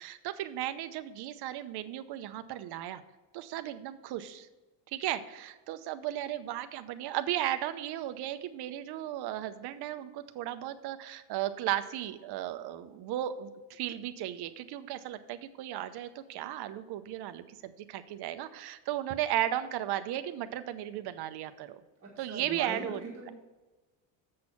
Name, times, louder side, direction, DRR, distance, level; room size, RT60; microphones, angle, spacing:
voice 1, 0.0-3.0 3.3-4.5 4.9-21.8 22.2-23.0, right 12 dB, 60° right, 10 dB, 0.8 m, -35 dB
voice 2, 22.0-23.3, right 4 dB, 30° right, -2 dB, 1.5 m, -40 dB
7.5 x 6.2 x 5.6 m, 1.2 s
cardioid pair, 160°, 45 cm